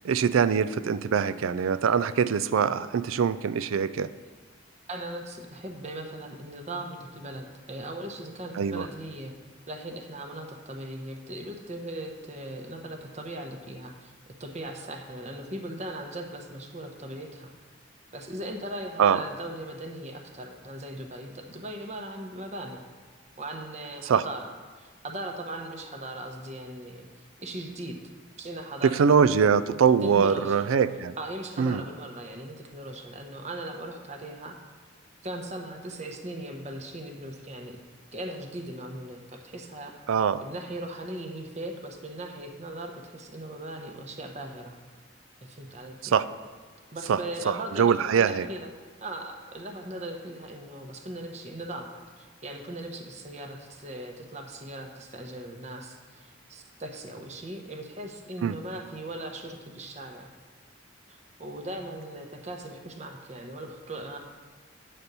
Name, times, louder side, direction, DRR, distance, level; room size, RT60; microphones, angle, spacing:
voice 1, 0.0-4.1 8.6-8.9 19.0-19.2 24.0-24.2 28.8-31.1 31.6-31.8 40.1-40.4 46.0-46.3 47.1-47.2 47.5-48.5 58.4-58.6, right 6 dB, 85° right, 15 dB, 0.4 m, -23 dB
voice 2, 4.9-9.3 9.7-14.1 14.4-17.5 18.1-22.8 23.4-24.5 24.8-27.1 27.4-28.0 28.4-29.4 30.0-30.7 31.2-34.6 35.2-37.8 38.1-39.9 40.4-44.8 45.4-46.2 46.9-48.7 49.0-51.9 52.2-60.3 61.1-64.2, right 1 dB, 35° right, 3 dB, 0.9 m, -39 dB
9.3 x 4.3 x 6.7 m, 1.5 s
head